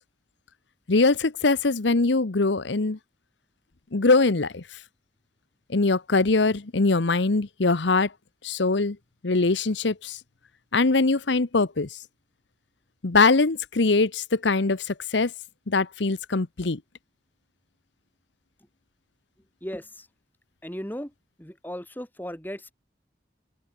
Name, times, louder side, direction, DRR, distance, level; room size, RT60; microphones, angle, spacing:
voice 1, 0.9-3.0 3.9-4.6 5.7-8.1 8.4-9.0 9.2-10.2 10.7-12.0 13.0-15.3 15.7-16.8, left 3 dB, 75° left, 1.0 m, -22 dB
voice 2, 19.6-20.1 20.6-21.1 21.4-22.7, equal, 10° left, 3.3 m, -36 dB
open air
head